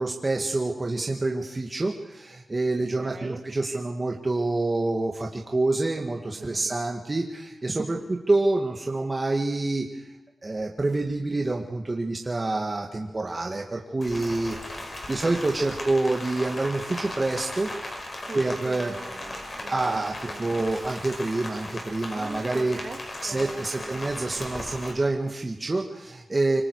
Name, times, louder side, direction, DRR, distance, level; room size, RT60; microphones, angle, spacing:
voice 1, 0.0-10.1 10.4-14.6 15.1-17.7 18.0-18.1 18.3-18.9 19.7-20.1 20.4-22.8 23.2-26.6, right 2 dB, 30° right, 1 dB, 1.9 m, -27 dB
voice 2, 2.7-3.5 6.4-6.7 7.7-8.1 18.3-20.5 22.1-24.0, right 3 dB, 45° right, 5 dB, 2.5 m, -42 dB
Rain, 14.0-24.9, left 1 dB, 40° left, 6.0 m, -37 dB
26.0 x 25.0 x 4.9 m, 1.0 s
wide cardioid pair, 90°, 0 cm